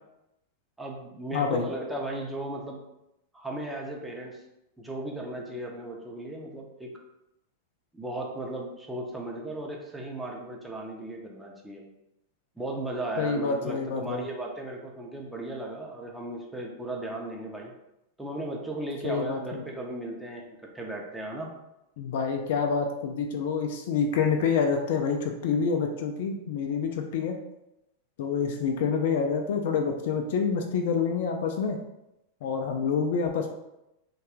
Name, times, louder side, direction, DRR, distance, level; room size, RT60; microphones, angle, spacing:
voice 1, 0.8-2.8 3.3-4.4 4.8-6.9 7.9-11.8 12.6-17.7 18.2-20.4 20.7-21.5, right 2 dB, 5° right, -1 dB, 0.6 m, -36 dB
voice 2, 1.3-1.7 13.2-14.2 19.0-19.6 22.0-27.4 28.2-31.8 32.4-33.5, left 5 dB, 55° left, 4 dB, 0.3 m, -27 dB
3.1 x 2.2 x 2.9 m, 0.88 s
figure-of-eight pair, 90°, 0 cm